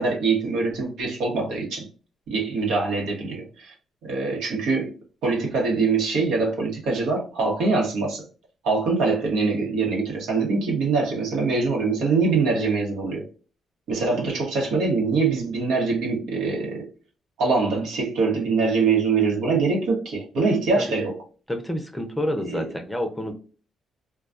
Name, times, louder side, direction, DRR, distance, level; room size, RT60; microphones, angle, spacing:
voice 1, 0.0-1.9 2.3-3.7 4.0-4.9 5.2-8.3 8.6-13.2 13.9-16.9 17.4-21.2 22.4-22.7, right 4 dB, 85° right, 1.0 m, -23 dB
voice 2, 21.5-23.3, left 1 dB, 10° left, 0.6 m, -28 dB
2.3 x 2.2 x 2.5 m
cardioid pair, 90°, 0 cm